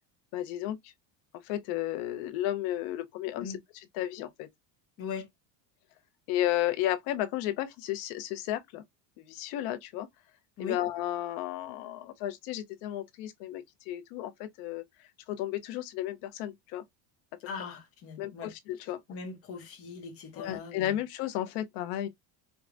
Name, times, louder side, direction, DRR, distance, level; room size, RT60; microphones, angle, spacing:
voice 1, 0.3-0.9 1.4-4.5 6.3-8.8 9.2-10.1 10.6-16.8 18.2-19.0 20.3-22.1, left 13 dB, 65° left, 0.8 m, -33 dB
voice 2, 5.0-5.3 10.6-10.8 17.5-18.5 19.1-21.0, left 5 dB, 30° left, 0.8 m, -40 dB
4.7 x 2.1 x 2.5 m
cardioid pair, 175°, 49 cm